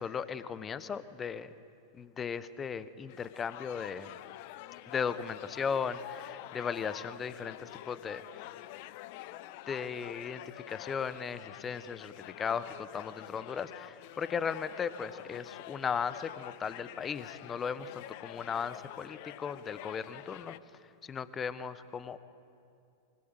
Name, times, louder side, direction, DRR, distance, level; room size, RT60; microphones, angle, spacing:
voice 1, 0.0-1.5 1.9-4.1 4.9-8.2 9.7-12.1 12.4-20.5 21.1-22.2, left 6 dB, 20° left, 15 dB, 1.1 m, -36 dB
sound 1, 3.1-20.6, left 15 dB, 45° left, 0.7 m, -47 dB
25.5 x 24.0 x 8.0 m, 2.5 s
figure-of-eight pair, 90°, 0 cm